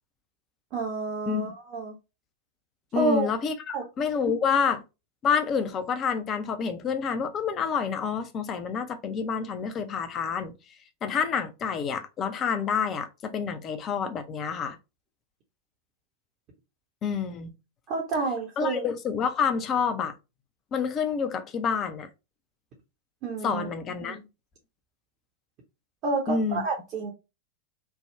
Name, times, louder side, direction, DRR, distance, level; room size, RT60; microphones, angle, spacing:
voice 1, 0.7-1.9 2.9-3.3 3.7-3.8 17.9-18.9 23.2-23.7 24.0-24.3 26.0-27.1, right 3 dB, 40° right, 0.9 m, -29 dB
voice 2, 2.9-4.8 5.2-10.5 11.0-14.8 17.0-17.5 18.6-20.1 20.7-22.1 23.4-24.2 26.3-26.6, left 6 dB, 30° left, 0.6 m, -28 dB
3.5 x 2.3 x 4.2 m
figure-of-eight pair, 90°, 0 cm